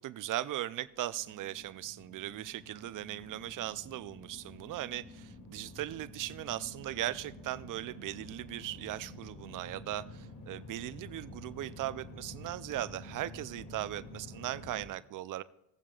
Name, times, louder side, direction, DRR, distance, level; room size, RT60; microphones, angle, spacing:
voice 1, 0.0-15.4, right 14 dB, 50° right, 16 dB, 0.5 m, -38 dB
sound 1, 0.9-14.9, left 1 dB, 60° left, 2.3 m, -49 dB
18.0 x 7.3 x 2.4 m, 0.86 s
supercardioid pair, 85°, 43 cm